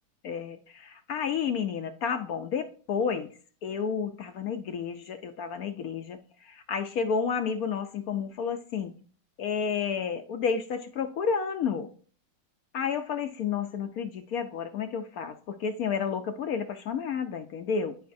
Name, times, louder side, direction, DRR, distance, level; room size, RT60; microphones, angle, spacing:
voice 1, 0.2-3.3 3.6-8.9 9.4-11.9 12.7-18.0, left 6 dB, 70° left, 0.9 m, -31 dB
11.5 x 5.0 x 2.6 m
omnidirectional pair, 1.9 m